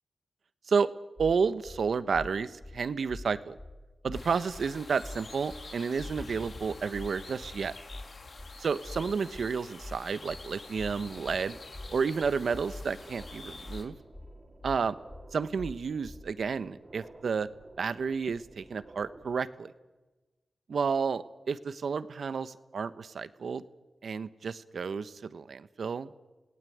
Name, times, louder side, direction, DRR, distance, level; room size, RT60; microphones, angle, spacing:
sound 1, 1.2-1.3 1.6-1.8 2.1-2.3 2.6-2.8 3.1-3.2 3.6-3.7 4.0-4.2 4.5-4.7 5.0-5.2 5.5-5.6 6.0-6.1 6.4-6.6 6.9-7.1 7.4-7.6 7.9-8.0 8.4-8.5 8.8-9.0 9.3-9.5 9.8-10.0 10.3-10.4 10.8-10.9 11.2-11.4 11.7-11.9 12.2-12.4 12.7-12.8 13.2-13.3 13.6-13.8 14.1-14.3 14.6-14.8 15.1-15.2 15.6-15.7 16.0-16.2, left 2 dB, 30° left, 6.6 m, -43 dB
voice 1, 1.2-3.6 4.0-7.7 8.6-11.6 11.9-13.9 14.6-15.0 15.3-17.5 17.8-19.7 20.7-23.6 24.0-26.1, right 5 dB, 75° right, 14 dB, 1.1 m, -31 dB
sound 2, 4.1-13.8, left 3 dB, 65° left, 3.7 m, -47 dB
sound 3, 10.7-19.4, right 2 dB, 40° right, 3.0 m, -54 dB
29.0 x 18.0 x 9.4 m, 1.2 s
cardioid pair, 50°, 0 cm